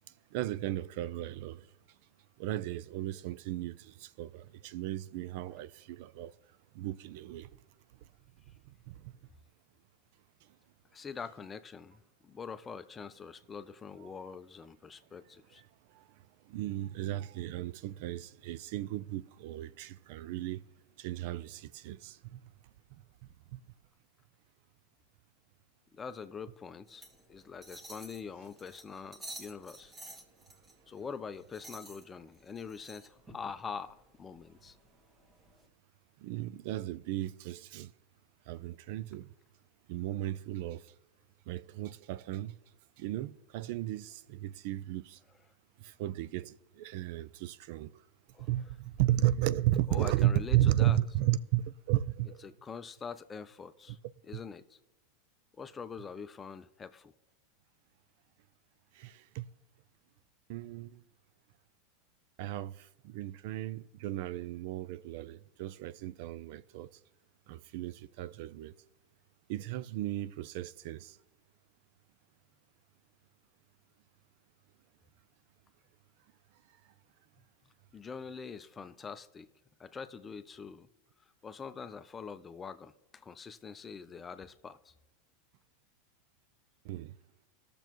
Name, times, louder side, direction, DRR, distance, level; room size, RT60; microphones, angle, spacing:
voice 1, 0.3-1.6 2.4-6.3 6.8-7.5 8.9-9.0 14.0-14.1 16.5-20.6 21.0-22.4 23.5-23.6 36.2-37.9 38.5-39.3 39.9-40.8 41.5-42.5 43.0-45.2 45.8-47.9 48.4-52.5 59.0-59.5 60.5-61.0 62.4-66.9 67.5-68.7 69.5-71.2 86.9-87.1, right 14 dB, 65° right, 0.4 m, -34 dB
voice 2, 10.9-15.6 25.9-29.9 30.9-34.8 48.3-48.5 49.9-51.0 52.4-54.0 54.3-54.8 55.6-57.1 77.9-79.5 79.8-80.9 81.4-84.9, left 6 dB, 20° left, 0.6 m, -44 dB
sound 1, 26.9-35.7, right 1 dB, 20° right, 1.4 m, -52 dB
19.5 x 6.9 x 3.0 m
supercardioid pair, 115°, 0 cm